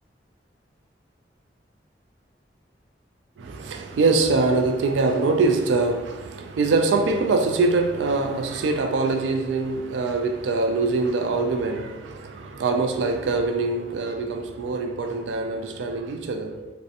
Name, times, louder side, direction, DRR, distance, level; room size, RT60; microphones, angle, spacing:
voice 1, 3.4-16.7, right 3 dB, 85° right, 0.3 m, -23 dB
2.7 x 2.0 x 2.4 m
head